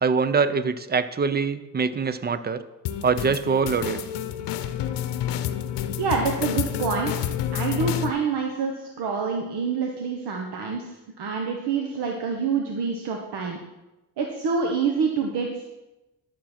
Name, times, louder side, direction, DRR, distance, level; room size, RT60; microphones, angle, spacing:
voice 1, 0.0-2.6 3.0-4.0, right 5 dB, 25° right, 13 dB, 0.6 m, -23 dB
sound 1, 2.8-8.1, left 10 dB, 85° left, 0.8 m, -29 dB
voice 2, 6.0-7.1 7.5-10.8 11.2-13.6 14.2-15.6, right 5 dB, 70° right, 2 dB, 1.2 m, -26 dB
11.5 x 7.4 x 4.4 m, 1.0 s
cardioid pair, 90°, 41 cm